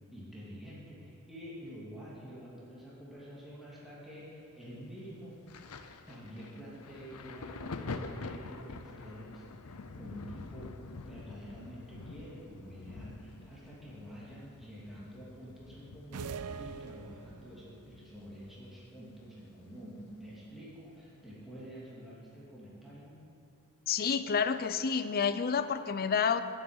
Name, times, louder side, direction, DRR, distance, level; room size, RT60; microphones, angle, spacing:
voice 1, 0.1-5.4 6.1-10.8 11.0-23.1, equal, ahead, -9 dB, 2.8 m, -48 dB
Thunder, 5.5-18.8 19.1-20.4 21.3-21.4, left 3 dB, 80° left, 0.7 m, -46 dB
sound 1, 16.1-17.7, right 5 dB, 85° right, 0.5 m, -42 dB
voice 2, 23.9-26.4, left 6 dB, 45° left, 11 dB, 0.5 m, -29 dB
10.5 x 8.1 x 8.2 m, 2.9 s
head